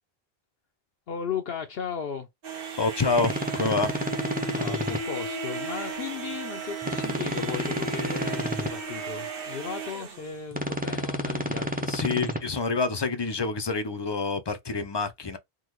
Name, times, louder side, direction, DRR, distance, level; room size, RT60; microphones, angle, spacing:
voice 1, 1.1-2.3 4.5-11.9, left 7 dB, 70° left, 0.8 m, -36 dB
sound 1, 2.4-10.4, right 8 dB, 65° right, 1.0 m, -36 dB
voice 2, 2.8-3.9 11.9-15.4, left 4 dB, 35° left, 0.4 m, -27 dB
sound 2, 3.1-5.0 6.8-8.7 10.5-12.4, equal, 10° right, 0.6 m, -30 dB
Bowed string instrument, 3.9-9.5, left 4 dB, 30° right, 1.3 m, -40 dB
3.7 x 2.2 x 3.0 m
omnidirectional pair, 1.0 m